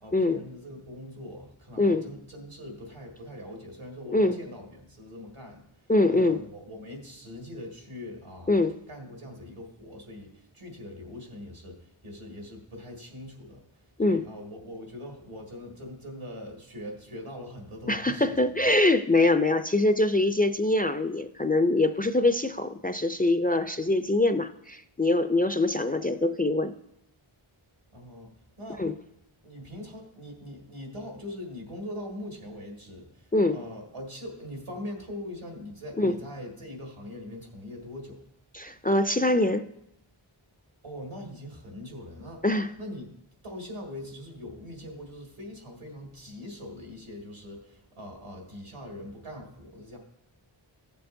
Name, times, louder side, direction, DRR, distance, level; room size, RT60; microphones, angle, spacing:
voice 1, 0.0-8.5 8.9-13.6 14.1-18.7 27.9-28.3 28.6-28.8 29.4-38.2 40.8-42.4 42.8-43.1 43.4-50.0, left 1 dB, 85° right, 1 dB, 2.1 m, -42 dB
voice 2, 5.9-6.4 8.5-8.7 14.0-14.2 17.9-26.7 28.8-28.9 33.3-33.6 36.0-36.2 38.5-39.7 42.4-42.7, left 2 dB, 20° left, 9 dB, 0.3 m, -24 dB
15.0 x 6.8 x 2.6 m, 0.80 s
wide cardioid pair, 40°, 49 cm